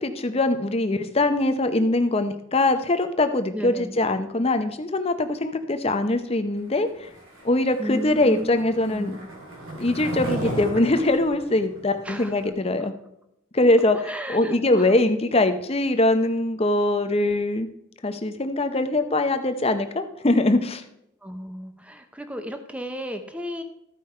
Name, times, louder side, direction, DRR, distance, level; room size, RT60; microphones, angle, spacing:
voice 1, 0.0-7.1 7.4-9.2 9.7-12.9 13.5-14.0 14.3-17.7 18.0-20.8, left 2 dB, 30° left, 9 dB, 0.7 m, -22 dB
voice 2, 3.5-4.0 7.8-9.3 12.0-12.3 13.9-14.9 21.2-23.6, equal, 5° right, 7 dB, 0.7 m, -34 dB
Skateboard, 7.0-12.5, right 1 dB, 85° right, 3.0 m, -35 dB
13.5 x 5.2 x 4.3 m, 0.79 s
head